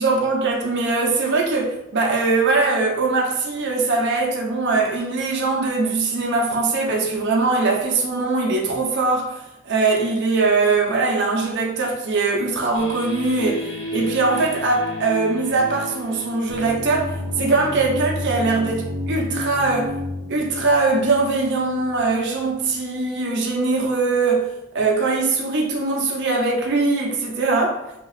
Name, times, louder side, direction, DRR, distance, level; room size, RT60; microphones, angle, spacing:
voice 1, 0.0-20.0 20.3-27.8, right 3 dB, 50° right, -1 dB, 0.5 m, -21 dB
sound 1, 12.7-22.1, left 1 dB, 55° left, 0.7 m, -31 dB
2.7 x 2.4 x 3.1 m, 0.87 s
head